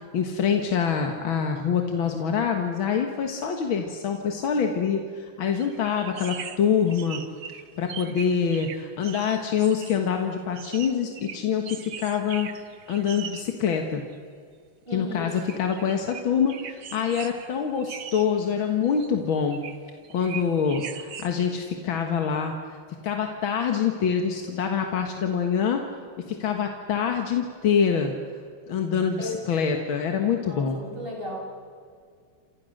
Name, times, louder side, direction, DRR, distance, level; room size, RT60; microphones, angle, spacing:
voice 1, 0.1-7.2 7.8-12.5 12.9-14.0 14.9-19.6 20.1-22.5 23.0-25.8 26.3-28.1 28.7-30.8, left 7 dB, 85° left, 4 dB, 2.3 m, -25 dB
sound 1, 5.6-10.1 10.6-13.6 14.1-14.2 15.4-16.2 16.5-17.5 17.8-19.8 20.0-21.5, right 8 dB, 80° right, 2.1 m, -40 dB
voice 2, 14.9-15.3 29.2-29.3 30.4-31.4, left 2 dB, 25° right, -1 dB, 7.3 m, -34 dB
30.0 x 27.0 x 6.6 m, 2.1 s
omnidirectional pair, 2.1 m